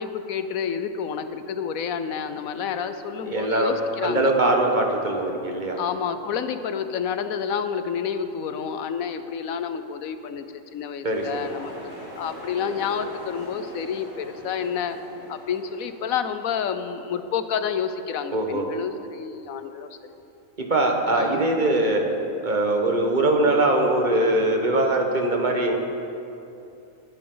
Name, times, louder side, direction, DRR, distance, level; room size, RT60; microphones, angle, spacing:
voice 1, 0.0-4.3 5.8-10.4 10.7-15.0 15.3-19.9 21.1-21.5, left 7 dB, 75° left, 10 dB, 1.1 m, -29 dB
voice 2, 3.2-3.7 4.0-5.8 11.0-11.5 18.3-18.6 20.6-22.0 22.4-25.8, right 2 dB, 35° right, 2 dB, 1.4 m, -22 dB
sound 1, 11.1-16.4, equal, 55° left, 4.1 m, -41 dB
19.5 x 9.9 x 3.9 m, 2.7 s
omnidirectional pair, 1.5 m